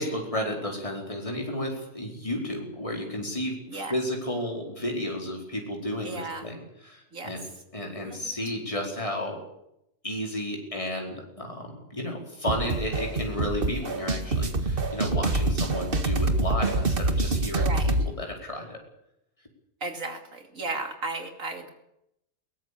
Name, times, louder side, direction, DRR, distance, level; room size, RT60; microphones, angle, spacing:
voice 1, 0.0-7.4 7.7-9.4 10.0-18.8, left 1 dB, 25° left, 0 dB, 4.8 m, -32 dB
voice 2, 6.0-6.5 7.1-7.3 8.0-8.2 17.6-17.9 19.8-21.7, right 3 dB, 80° right, 5 dB, 3.3 m, -34 dB
sound 1, 12.5-18.1, right 2 dB, 45° right, 1.9 m, -26 dB
21.5 x 18.0 x 8.6 m, 0.80 s
omnidirectional pair, 1.4 m